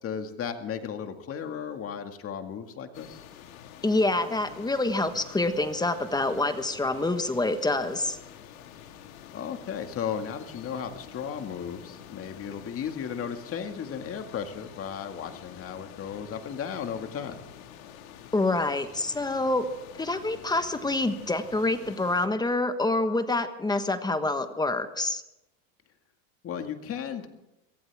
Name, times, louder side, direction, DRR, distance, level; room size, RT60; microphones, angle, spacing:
voice 1, 0.0-3.2 9.3-17.4 26.4-27.3, left 7 dB, 35° left, 6 dB, 2.1 m, -35 dB
sound 1, 2.9-22.3, left 9 dB, 85° left, 2.2 m, -48 dB
voice 2, 3.8-8.2 18.3-19.7 20.0-25.2, left 2 dB, 10° left, 9 dB, 1.4 m, -26 dB
24.0 x 16.0 x 3.6 m, 0.90 s
supercardioid pair, 120°, 40 cm